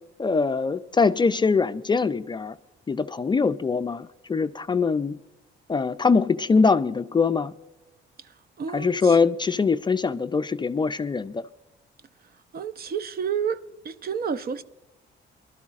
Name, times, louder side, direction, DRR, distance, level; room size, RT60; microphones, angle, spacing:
voice 1, 0.2-2.6 2.9-5.1 5.7-7.5 8.7-11.4, left 4 dB, 25° left, 0.4 m, -23 dB
voice 2, 8.2-9.2 12.2-14.6, right 7 dB, 50° right, 0.6 m, -31 dB
23.0 x 12.0 x 2.4 m
cardioid pair, 90°, 20 cm